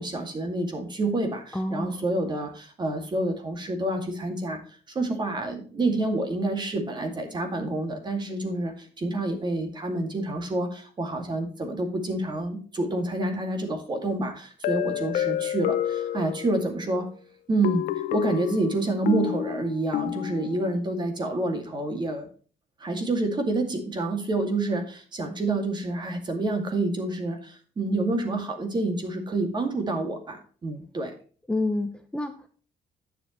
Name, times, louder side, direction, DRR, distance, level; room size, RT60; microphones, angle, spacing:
voice 1, 0.0-4.6 4.9-17.1 17.5-22.3 22.8-31.1, right 2 dB, 30° right, 5 dB, 2.3 m, -28 dB
voice 2, 1.5-2.0 31.5-32.5, left 2 dB, 5° left, 6 dB, 0.8 m, -29 dB
sound 1, 14.6-16.8 17.6-20.8, left 11 dB, 90° left, 0.6 m, -29 dB
11.0 x 7.7 x 3.1 m, 0.40 s
cardioid pair, 130°, 14 cm